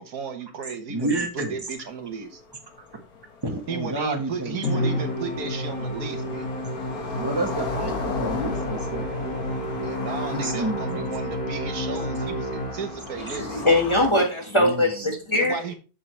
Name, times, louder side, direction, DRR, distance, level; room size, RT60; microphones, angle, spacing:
voice 1, 0.0-2.4 3.7-6.5 9.7-13.7 15.3-15.7, right 5 dB, 80° right, 1.7 m, -34 dB
voice 2, 0.9-1.5 3.4-4.5 7.1-9.1 10.3-11.1 12.2-12.3 14.7-14.8, right 2 dB, 15° right, 1.3 m, -29 dB
sound 1, 1.1-1.2 1.6-1.7 1.9-14.1, left 5 dB, 85° left, 1.8 m, -37 dB
Musical instrument, 4.6-13.2, equal, 60° left, 2.5 m, -30 dB
voice 3, 13.2-15.7, left 1 dB, 20° left, 1.4 m, -22 dB
7.7 x 7.4 x 3.2 m
omnidirectional pair, 1.6 m